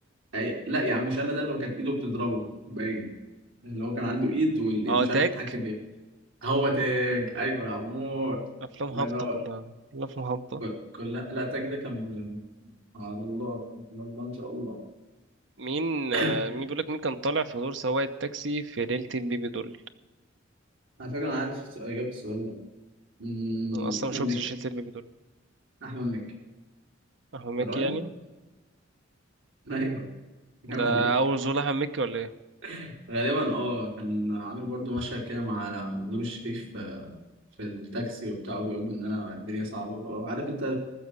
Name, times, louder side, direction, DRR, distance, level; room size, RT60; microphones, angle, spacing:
voice 1, 0.3-3.1 3.6-5.2 5.5-5.7 6.4-8.4 8.9-9.4 10.6-12.4 12.9-14.8 16.1-16.4 21.0-22.6 23.2-24.4 25.8-26.2 27.6-28.0 29.7-30.1 30.6-31.1 32.6-37.1 37.6-40.8, equal, 80° right, -1 dB, 3.8 m, -31 dB
voice 2, 4.9-5.4 8.8-9.1 9.3-9.6 9.9-10.6 15.6-19.8 23.7-25.0 27.3-28.1 30.7-32.3, right 3 dB, 65° right, 10 dB, 0.8 m, -29 dB
15.0 x 6.5 x 9.6 m, 1.1 s
head